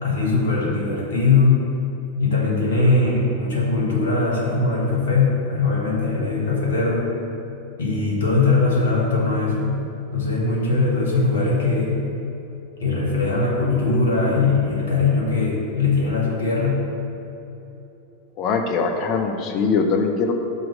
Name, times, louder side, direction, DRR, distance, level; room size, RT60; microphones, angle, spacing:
voice 1, 0.0-1.6 2.2-7.1 7.8-9.8 10.1-12.0 12.8-16.8, left 3 dB, 65° left, -4 dB, 1.6 m, -20 dB
voice 2, 18.4-20.3, left 5 dB, 40° left, 4 dB, 0.7 m, -22 dB
5.5 x 4.5 x 6.2 m, 2.9 s
figure-of-eight pair, 90°, 0 cm